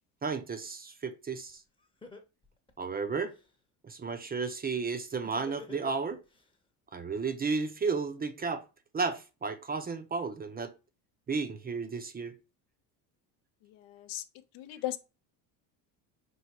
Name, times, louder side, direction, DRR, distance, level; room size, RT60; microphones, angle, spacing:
voice 1, 0.2-1.6 2.8-3.3 3.8-6.2 6.9-8.6 8.9-10.7 11.3-12.4, right 4 dB, 20° right, 0.4 m, -33 dB
Laughter, 1.5-1.6 2.0-3.5 5.2-6.4, left 3 dB, 10° left, 0.7 m, -47 dB
voice 2, 13.6-14.2 14.5-15.0, left 14 dB, 85° left, 0.7 m, -37 dB
4.5 x 2.8 x 2.8 m
supercardioid pair, 90°, 47 cm